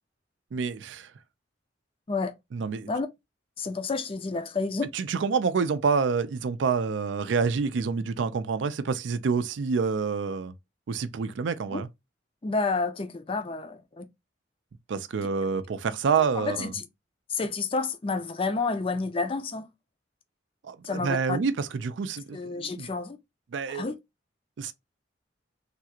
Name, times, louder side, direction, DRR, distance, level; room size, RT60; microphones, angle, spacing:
voice 1, 0.5-1.1 2.5-2.9 4.9-10.5 10.9-11.9 14.9-16.7 20.6-22.9 23.5-23.8 24.6-24.7, right 5 dB, 75° right, 0.4 m, -27 dB
voice 2, 3.6-4.9 11.7-11.8 12.4-14.1 16.2-16.9 17.3-19.7 20.8-21.4 22.3-23.2 23.7-24.0, left 4 dB, 30° left, 0.4 m, -30 dB
3.3 x 2.4 x 2.8 m
head